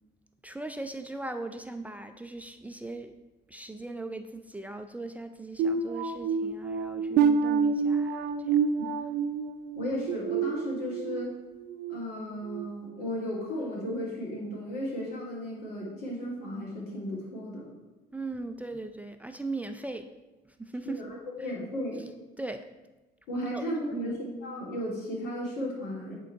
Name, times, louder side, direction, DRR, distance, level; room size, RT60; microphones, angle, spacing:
voice 1, 0.4-3.1 3.5-8.6 18.1-20.1 20.5-21.0 21.4-21.5 22.4-22.7 23.5-23.7 23.9-24.2, right 2 dB, 10° right, 7 dB, 0.4 m, -39 dB
sound 1, 5.6-11.2 11.7-12.0 12.5-12.7, right 6 dB, 80° right, 0.5 m, -28 dB
voice 2, 9.7-11.3 11.9-17.7 20.9-22.0 23.3-26.1, equal, 80° left, -3 dB, 2.5 m, -35 dB
9.2 x 3.9 x 4.6 m, 1.1 s
cardioid pair, 110°, 17 cm